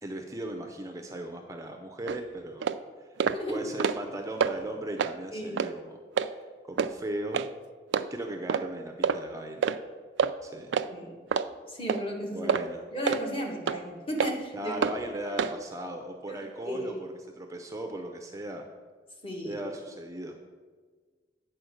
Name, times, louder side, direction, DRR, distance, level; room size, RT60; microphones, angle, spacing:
voice 1, 0.0-2.7 3.0-3.1 3.5-6.0 6.4-7.5 8.1-9.7 10.4-10.7 12.3-12.8 14.5-18.6 19.4-20.4, right 1 dB, 20° right, 4 dB, 0.5 m, -37 dB
sound 1, 2.1-2.2 2.6-2.8 3.2-3.4 3.7-4.1 4.4-4.5 5.0-5.2 5.6-5.7 6.2-6.3 6.8-6.9 7.3-7.5 7.9-8.1 8.5-8.7 9.0-9.2 9.6-9.8 10.2-10.3 10.7-10.9 11.3-11.5 11.9-12.0 12.5-12.7 13.1-13.2 13.7-13.8 14.2-14.3 14.8-15.0 15.4-15.5, right 6 dB, 80° right, 0.3 m, -26 dB
voice 2, 3.3-3.6 5.3-5.6 10.9-11.2 11.7-12.5 12.9-14.7 16.3-17.0 19.2-19.6, equal, 30° left, 0 dB, 1.4 m, -35 dB
9.0 x 4.4 x 6.3 m, 1.5 s
head